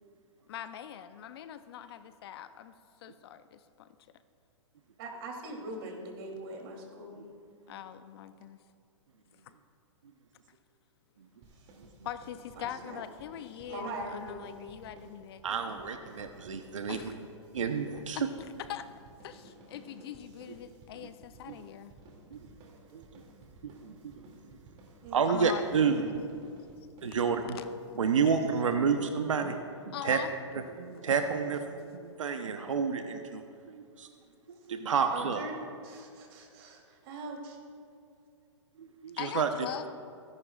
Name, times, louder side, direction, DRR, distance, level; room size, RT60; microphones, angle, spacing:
voice 1, 0.5-3.9 7.7-8.6 9.4-9.5 12.0-15.4 16.9-17.1 18.2-18.9 19.2-22.0 25.3-25.6 27.5-27.7 28.3-28.4 29.9-30.3 39.2-39.9, left 10 dB, 55° left, 12 dB, 0.6 m, -42 dB
voice 2, 5.0-7.3 12.6-13.0 13.7-14.4 25.0-26.1 35.1-35.6 35.8-37.6, right 2 dB, 50° right, 1 dB, 3.0 m, -42 dB
sound 1, 11.4-29.2, right 2 dB, 35° right, 2.5 m, -55 dB
voice 3, 15.4-17.0 17.5-18.2 21.0-21.1 21.5-21.6 22.3-22.5 22.9-23.0 23.6-24.2 24.5-24.6 25.1-26.2 27.0-27.6 28.0-29.6 29.9-30.2 30.5-34.1 34.7-35.4 38.8-39.5, right 6 dB, 85° right, 6 dB, 0.9 m, -30 dB
23.5 x 11.0 x 2.4 m, 2.4 s
hypercardioid pair, 135°, 16 cm